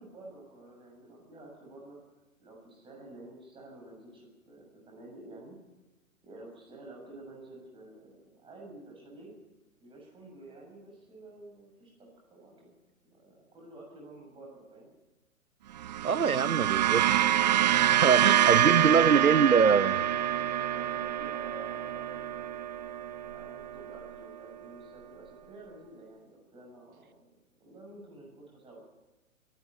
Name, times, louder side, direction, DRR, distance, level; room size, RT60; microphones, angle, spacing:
voice 1, 0.0-2.0 2.4-5.6 6.2-9.3 9.8-12.7 13.0-14.9 19.0-22.5 23.3-27.3 27.6-28.8, right 2 dB, 10° right, 0 dB, 6.9 m, -50 dB
sound 1, 15.8-24.2, right 11 dB, 30° right, 0.6 m, -26 dB
voice 2, 16.0-17.0 17.9-20.0, right 6 dB, 85° right, 19 dB, 1.0 m, -24 dB
22.5 x 12.0 x 9.7 m, 1.1 s
figure-of-eight pair, 125°, 42 cm